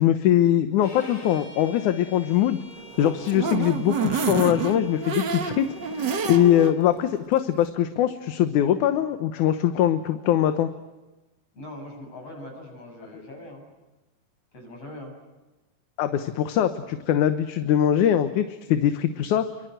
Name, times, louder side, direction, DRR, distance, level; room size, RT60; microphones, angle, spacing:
voice 1, 0.0-2.6 3.0-5.7 6.3-10.7 16.0-19.5, left 11 dB, 75° left, 9 dB, 2.5 m, -22 dB
Bowed string instrument, 0.8-6.8, left 1 dB, 25° left, 6.3 m, -47 dB
sound 1, 2.8-6.7 7.2-7.3 7.6-7.7, right 6 dB, 45° right, 1.6 m, -28 dB
voice 2, 11.5-13.7 14.5-15.1, left 1 dB, 50° left, 2 dB, 8.5 m, -41 dB
29.0 x 24.0 x 8.0 m, 1.1 s
omnidirectional pair, 3.5 m